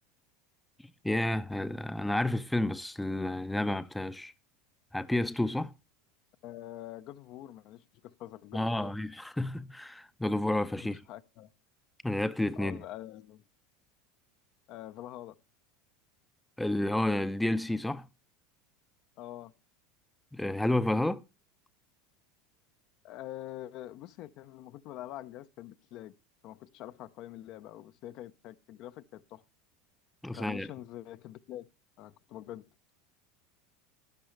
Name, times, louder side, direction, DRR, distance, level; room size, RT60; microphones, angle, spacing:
voice 1, 1.0-4.3 4.9-5.7 8.5-11.0 12.0-12.8 16.6-18.1 20.3-21.2 30.2-30.7, left 1 dB, 5° left, 0.5 m, -30 dB
voice 2, 6.4-8.9 10.8-11.5 12.6-13.4 14.7-15.4 19.2-19.5 23.0-26.1 26.4-29.4 30.3-31.7 32.0-32.7, left 13 dB, 55° left, 0.5 m, -45 dB
12.0 x 10.0 x 3.2 m
hypercardioid pair, 85°, 0 cm